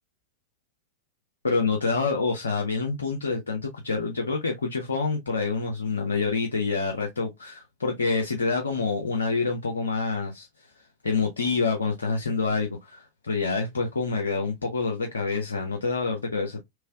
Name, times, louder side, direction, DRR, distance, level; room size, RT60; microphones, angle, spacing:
voice 1, 1.4-10.7 11.0-16.6, left 4 dB, 70° left, 0.6 m, -27 dB
3.2 x 3.1 x 2.3 m
figure-of-eight pair, 90°, 0 cm